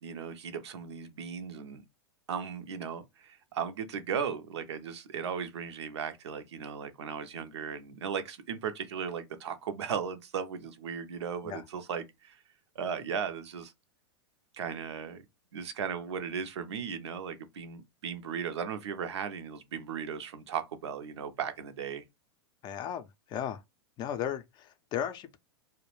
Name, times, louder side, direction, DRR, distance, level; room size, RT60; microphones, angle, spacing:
voice 1, 0.0-1.8 2.3-12.4 12.8-13.7 14.5-15.2 15.5-22.0, right 7 dB, 80° right, 0.5 m, -36 dB
voice 2, 22.6-23.6 24.0-25.4, left 9 dB, 30° left, 0.4 m, -35 dB
2.3 x 2.1 x 3.0 m
hypercardioid pair, 115°, 14 cm